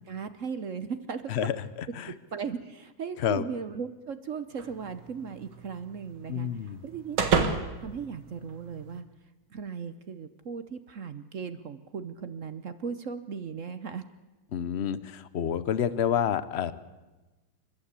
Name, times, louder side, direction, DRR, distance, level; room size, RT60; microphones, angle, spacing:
voice 1, 0.0-1.4 2.1-9.0 9.5-14.0, right 6 dB, 55° right, 11 dB, 0.9 m, -37 dB
sound 1, 4.6-9.0, right 5 dB, 90° right, 2.5 m, -32 dB
voice 2, 6.3-6.8 14.5-16.7, left 9 dB, 65° left, 15 dB, 0.6 m, -28 dB
29.5 x 12.0 x 8.3 m, 1.2 s
omnidirectional pair, 2.2 m